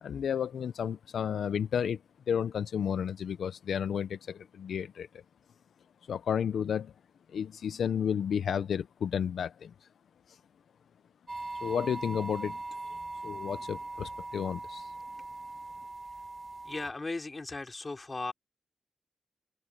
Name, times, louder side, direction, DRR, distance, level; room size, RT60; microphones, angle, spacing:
voice 1, 0.0-2.0 2.3-5.2 6.1-6.9 7.3-9.7 11.6-12.6 13.2-14.9, left 8 dB, 85° left, 0.6 m, -32 dB
sound 1, 11.3-16.9, right 2 dB, 25° right, 1.3 m, -40 dB
voice 2, 16.6-18.3, left 3 dB, 30° left, 3.7 m, -37 dB
wide cardioid pair, 105°, 0 cm